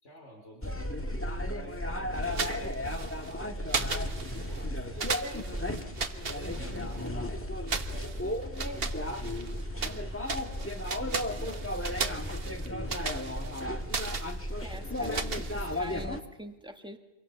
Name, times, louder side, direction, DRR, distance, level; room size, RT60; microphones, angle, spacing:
voice 1, 0.0-1.1 1.7-2.8 3.4-6.0 6.3-10.1 10.6-13.8, equal, 80° left, 1 dB, 4.3 m, -51 dB
sound 1, 0.6-16.2, left 1 dB, 10° left, 1.4 m, -34 dB
sound 2, 2.2-3.3 3.7-4.7 5.0-7.1 7.7-10.0 10.3-16.0, right 5 dB, 55° right, 1.4 m, -37 dB
voice 2, 14.6-17.0, equal, 5° right, 5 dB, 1.8 m, -44 dB
26.5 x 23.0 x 6.9 m, 1.0 s
omnidirectional pair, 1.2 m